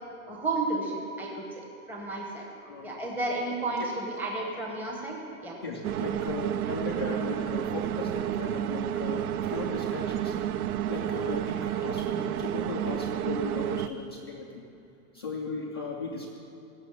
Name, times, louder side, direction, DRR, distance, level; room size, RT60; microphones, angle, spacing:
voice 1, 0.3-1.4 1.9-2.5 2.8-5.2 5.4-5.5, right 2 dB, 5° right, -2 dB, 0.9 m, -32 dB
voice 2, 2.6-3.0 3.8-3.9 4.4-4.5 5.6-10.4 10.9-14.5 15.1-16.3, left 3 dB, 20° left, -4 dB, 0.3 m, -37 dB
sound 1, 5.8-13.9, right 11 dB, 75° right, 0.7 m, -30 dB
16.0 x 6.9 x 9.7 m, 2.6 s
supercardioid pair, 165°, 44 cm